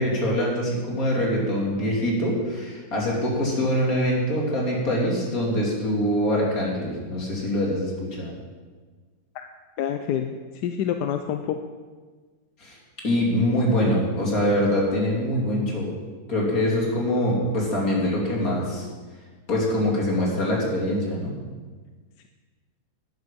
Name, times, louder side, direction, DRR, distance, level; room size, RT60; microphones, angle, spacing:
voice 1, 0.0-8.3 12.6-12.8 13.0-15.9 16.3-18.9 19.5-21.3, equal, 60° left, -3 dB, 3.2 m, -24 dB
voice 2, 9.8-11.6, left 9 dB, 85° left, 7 dB, 1.2 m, -27 dB
12.5 x 9.9 x 5.3 m, 1.4 s
omnidirectional pair, 1.7 m